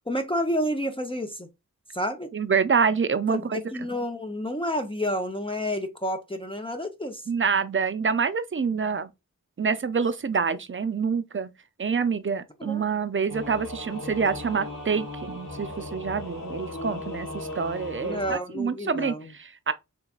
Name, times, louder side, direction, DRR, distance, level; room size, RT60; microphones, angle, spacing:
voice 1, 0.1-1.5 1.9-2.3 3.3-7.2 12.6-12.8 18.0-19.3, equal, 15° left, 0.6 m, -30 dB
voice 2, 2.3-3.6 7.3-9.1 9.6-11.5 11.8-19.7, right 5 dB, 35° right, 0.5 m, -26 dB
Singing / Musical instrument, 13.3-18.3, left 2 dB, 70° left, 1.3 m, -37 dB
3.4 x 3.1 x 2.4 m
wide cardioid pair, 45°, 34 cm